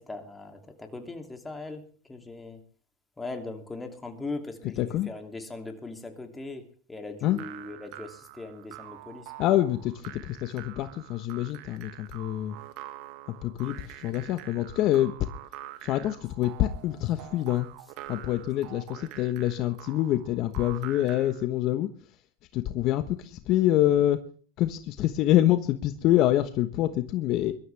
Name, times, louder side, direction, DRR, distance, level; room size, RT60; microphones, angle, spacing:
voice 1, 0.0-2.6 3.2-9.3, left 3 dB, 10° left, 2.8 m, -40 dB
voice 2, 4.8-5.1 7.2-7.4 9.4-12.5 13.4-13.7 14.0-15.1 15.8-17.7 18.1-21.9 22.5-24.2 24.6-27.5, left 13 dB, 50° left, 1.2 m, -26 dB
sound 1, 7.2-21.4, right 14 dB, 55° right, 1.6 m, -46 dB
22.5 x 13.0 x 3.4 m
supercardioid pair, 115°, 0 cm